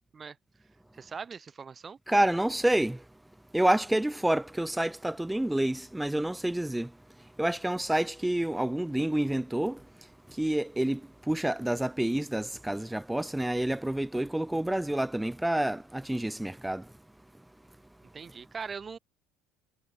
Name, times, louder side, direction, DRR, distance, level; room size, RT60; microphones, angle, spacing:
voice 1, 0.9-2.0 18.1-19.0, right 5 dB, 25° right, 7.9 m, -40 dB
voice 2, 2.1-3.0 3.5-6.9 7.4-9.8 10.4-11.0 11.3-16.8, right 1 dB, 5° right, 7.3 m, -28 dB
supercardioid pair, 105°, 0 cm